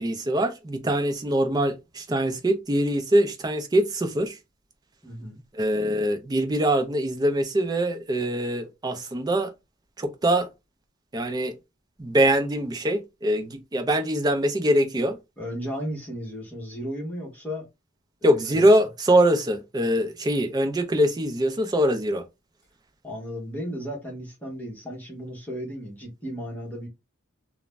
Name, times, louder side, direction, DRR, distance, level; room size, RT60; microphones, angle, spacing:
voice 1, 0.0-4.4 5.5-9.5 10.0-10.5 11.1-11.6 12.0-15.2 18.2-22.2, right 1 dB, 20° right, 0.4 m, -23 dB
voice 2, 5.0-5.4 15.4-17.7 18.2-18.6 23.0-26.9, equal, 10° left, 0.9 m, -35 dB
2.5 x 2.0 x 3.2 m
head